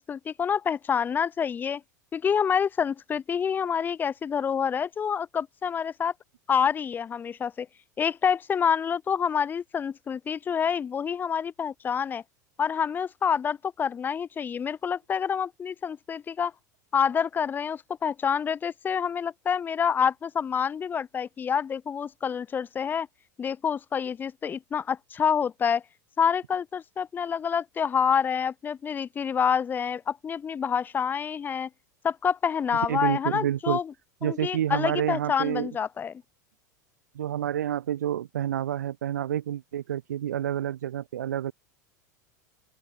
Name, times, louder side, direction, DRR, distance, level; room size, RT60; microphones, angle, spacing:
voice 1, 0.0-1.8 2.1-6.1 6.5-7.7 8.0-12.2 12.6-16.5 16.9-23.1 23.4-25.8 26.2-31.7 32.0-33.9 34.2-36.2, left 7 dB, 20° left, 0.5 m, -27 dB
voice 2, 32.7-33.8 34.2-35.7 37.2-41.5, right 11 dB, 70° right, 0.4 m, -29 dB
open air
figure-of-eight pair, 80°, 10 cm